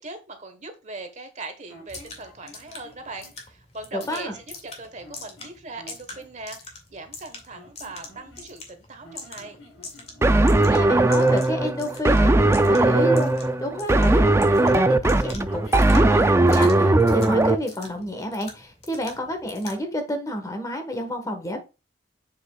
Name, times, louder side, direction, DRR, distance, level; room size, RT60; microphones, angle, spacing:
voice 1, 0.0-9.6, right 2 dB, 40° right, 7 dB, 1.2 m, -40 dB
sound 1, 1.7-3.4 4.0-4.6 5.0-6.3 7.5-8.7 9.0-13.6 14.2-16.3, left 1 dB, 80° left, 4.4 m, -50 dB
sound 2, 1.9-19.8, left 3 dB, 35° left, 2.1 m, -44 dB
voice 2, 3.9-4.3 10.7-21.6, left 1 dB, 20° left, 6 dB, 1.3 m, -30 dB
sound 3, 10.2-17.6, right 2 dB, 15° right, 0.4 m, -18 dB
7.6 x 6.3 x 2.3 m, 0.29 s
head